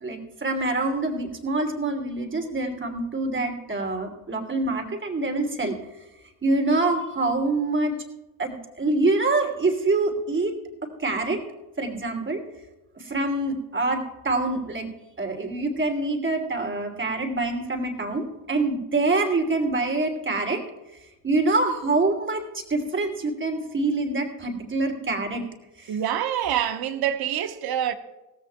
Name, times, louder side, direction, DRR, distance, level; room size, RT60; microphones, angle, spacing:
voice 1, 0.0-5.7 6.4-7.9 8.4-10.5 10.8-11.4 11.8-12.4 13.0-14.9 15.2-20.6 21.2-25.4 25.8-26.0, right 2 dB, 25° right, 2.9 m, -25 dB
voice 2, 25.9-27.9, right 10 dB, 50° right, 1.2 m, -26 dB
17.5 x 15.0 x 2.3 m
hypercardioid pair, 60°, 47 cm